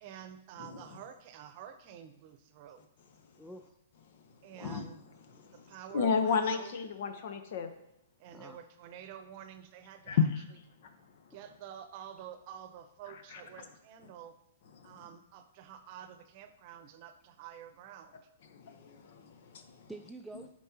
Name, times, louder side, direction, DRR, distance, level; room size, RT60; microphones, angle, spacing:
voice 1, 0.0-2.9 4.4-5.0 5.5-6.7 8.2-10.3 11.3-14.4 14.8-18.2, right 9 dB, 45° right, 0.8 m, -49 dB
voice 2, 0.6-1.0 3.2-3.5 4.1-4.9 5.3-7.7 10.1-10.5 10.8-11.3 13.1-13.4 14.7-15.0 18.4-19.9 20.3-20.4, left 5 dB, 60° left, 0.9 m, -34 dB
voice 3, 3.4-3.8 4.6-4.8 5.3-5.5 8.3-8.6 19.6-20.5, right 1 dB, ahead, 0.4 m, -48 dB
10.5 x 4.6 x 2.9 m
hypercardioid pair, 125°, 0 cm